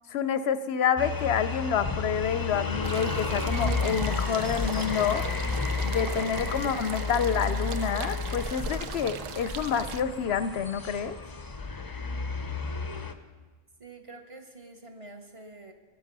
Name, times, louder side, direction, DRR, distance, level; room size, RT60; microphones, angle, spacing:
voice 1, 0.1-5.2 5.8-11.2, left 7 dB, 65° left, 13 dB, 0.7 m, -28 dB
sound 1, 1.0-13.1, left 4 dB, 25° left, 0.5 m, -32 dB
sound 2, 2.8-10.0, right 9 dB, 80° right, 1.0 m, -40 dB
voice 2, 13.8-15.7, right 2 dB, 25° right, 3 dB, 1.2 m, -47 dB
16.0 x 11.0 x 5.4 m, 1.3 s
omnidirectional pair, 1.3 m